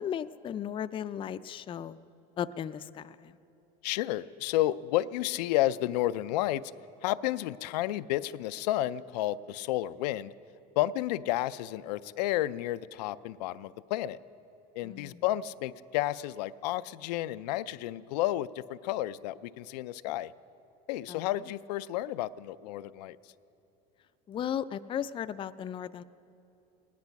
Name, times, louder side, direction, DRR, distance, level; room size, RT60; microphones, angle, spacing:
voice 1, 0.0-2.0 2.4-3.4 14.8-15.2 21.1-21.3 24.3-26.0, left 9 dB, 25° left, 14 dB, 0.4 m, -36 dB
voice 2, 3.8-6.6 7.0-10.3 10.8-14.2 14.7-20.3 20.9-23.2, left 14 dB, 90° left, 15 dB, 0.4 m, -31 dB
18.5 x 10.5 x 5.8 m, 2.8 s
supercardioid pair, 110°, 20 cm